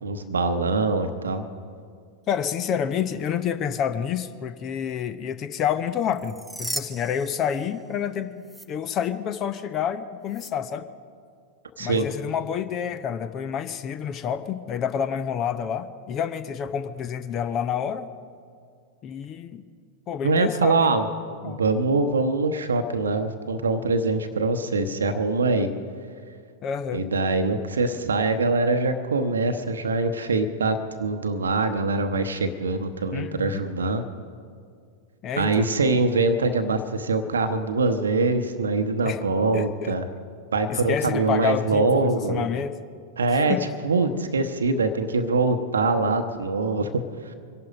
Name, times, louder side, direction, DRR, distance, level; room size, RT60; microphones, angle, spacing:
voice 1, 0.0-1.4 11.8-12.1 20.2-21.1 21.4-25.7 26.9-34.0 35.4-40.1 40.5-42.5 43.2-43.6 43.8-47.3, right 3 dB, 70° right, 8 dB, 0.9 m, -23 dB
voice 2, 2.3-10.9 11.8-18.1 19.0-19.6 20.1-20.9 21.4-21.6 26.6-27.0 33.1-33.6 35.2-35.7 39.0-39.2 39.5-39.9 40.7-42.8 43.5-43.6, left 8 dB, 30° left, 12 dB, 0.8 m, -28 dB
sound 1, 6.1-8.1 8.4-8.7 10.3-10.5, right 1 dB, ahead, 0.7 m, -36 dB
24.0 x 11.5 x 5.2 m, 2.2 s
figure-of-eight pair, 90°, 0 cm